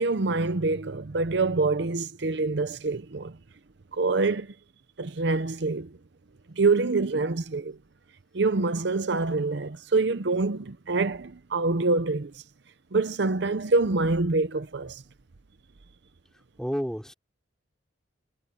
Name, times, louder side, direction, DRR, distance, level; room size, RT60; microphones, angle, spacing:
voice 1, 0.0-3.3 3.9-4.5 5.0-5.9 6.6-7.8 8.3-12.3 12.9-15.0, right 3 dB, 60° right, 0.7 m, -25 dB
voice 2, 16.6-17.1, equal, 5° left, 3.3 m, -30 dB
head